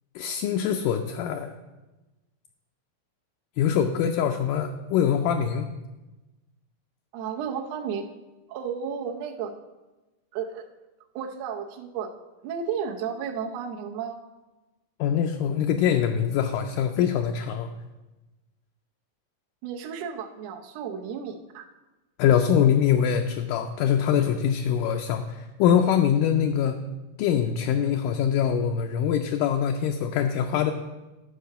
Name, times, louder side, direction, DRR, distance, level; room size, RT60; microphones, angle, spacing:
voice 1, 0.2-1.5 3.6-5.7 15.0-17.7 22.2-26.8 27.2-30.7, left 8 dB, 80° left, 5 dB, 2.0 m, -23 dB
voice 2, 7.1-8.1 8.5-9.5 10.3-10.7 11.1-12.1 12.4-14.2 19.6-21.7, right 7 dB, 85° right, 1 dB, 1.5 m, -33 dB
10.5 x 4.6 x 6.6 m, 1.1 s
omnidirectional pair, 4.1 m